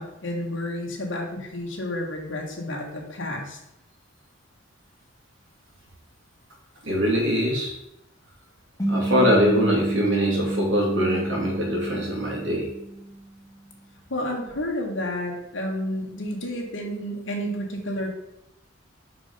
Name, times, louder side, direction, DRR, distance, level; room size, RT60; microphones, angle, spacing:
voice 1, 0.0-3.6 14.1-18.1, left 1 dB, 70° left, 0 dB, 1.6 m, -30 dB
voice 2, 6.8-7.7 8.9-12.7, equal, 70° right, -3 dB, 2.4 m, -23 dB
sound 1, 8.8-13.4, right 1 dB, 20° left, 1.2 m, -29 dB
5.6 x 4.9 x 5.0 m, 0.84 s
head